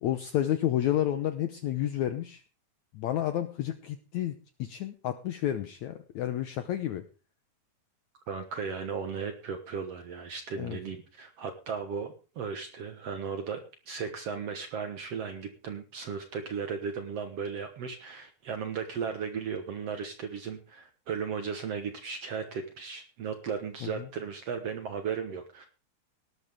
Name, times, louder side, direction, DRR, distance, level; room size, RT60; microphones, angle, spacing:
voice 1, 0.0-2.4 2.9-7.1 10.5-10.8 23.8-24.1, left 12 dB, 75° left, 10 dB, 1.7 m, -30 dB
voice 2, 8.3-25.7, right 6 dB, 55° right, 7 dB, 1.8 m, -36 dB
18.0 x 12.0 x 3.6 m, 0.34 s
omnidirectional pair, 4.3 m